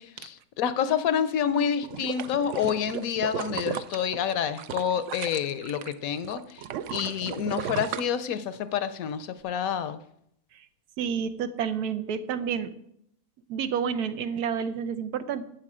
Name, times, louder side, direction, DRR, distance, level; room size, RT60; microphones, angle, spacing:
voice 1, 0.0-6.6 6.9-10.0, left 8 dB, 70° left, 13 dB, 1.0 m, -28 dB
sound 1, 1.8-5.9 6.2-8.8 9.2-9.3, right 9 dB, 65° right, 0.8 m, -35 dB
voice 2, 11.0-12.7 13.5-15.4, right 7 dB, 85° right, 11 dB, 1.3 m, -29 dB
11.5 x 8.0 x 4.9 m, 0.74 s
omnidirectional pair, 1.6 m